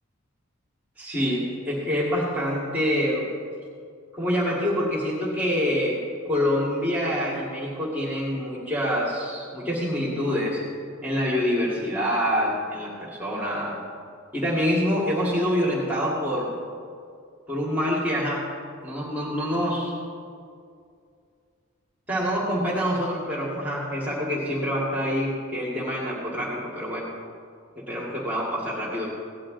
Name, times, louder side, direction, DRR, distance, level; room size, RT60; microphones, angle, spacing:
voice 1, 1.0-3.2 4.1-6.0 6.3-10.6 11.0-13.8 14.3-16.5 17.5-18.4 18.8-20.0 22.1-27.1 27.8-29.1, equal, 10° right, -6 dB, 2.1 m, -26 dB
17.5 x 10.5 x 3.9 m, 2.3 s
head